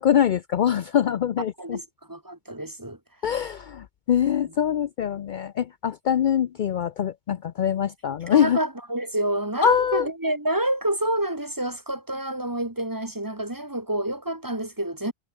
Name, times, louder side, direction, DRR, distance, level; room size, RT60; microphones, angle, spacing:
voice 1, 0.0-1.8 3.2-8.6 9.6-10.0, left 9 dB, 60° left, 0.6 m, -23 dB
voice 2, 1.6-3.0 4.4-4.5 8.3-15.1, right 1 dB, 20° right, 1.8 m, -28 dB
omnidirectional pair, 1.0 m